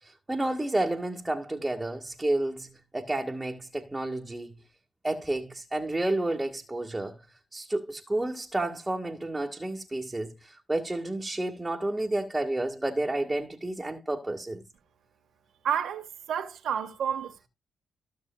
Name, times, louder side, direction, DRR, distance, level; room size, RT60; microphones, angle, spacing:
voice 1, 0.0-4.6 5.0-7.2 7.5-14.6, right 1 dB, 15° right, 1.9 m, -31 dB
voice 2, 15.6-17.5, right 8 dB, 75° right, 1.7 m, -30 dB
15.5 x 6.4 x 2.4 m
supercardioid pair, 65°, 0 cm